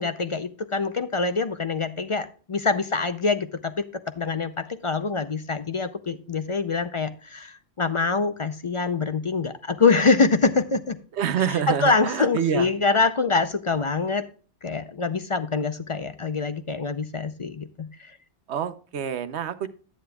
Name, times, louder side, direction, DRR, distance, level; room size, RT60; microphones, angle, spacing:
voice 1, 0.0-3.7 4.2-11.0 11.7-14.2 14.6-18.2, left 4 dB, 45° left, 11 dB, 0.4 m, -25 dB
voice 2, 11.1-12.7 18.5-19.7, right 8 dB, 80° right, 12 dB, 1.0 m, -27 dB
11.0 x 9.5 x 2.3 m, 0.39 s
omnidirectional pair, 1.1 m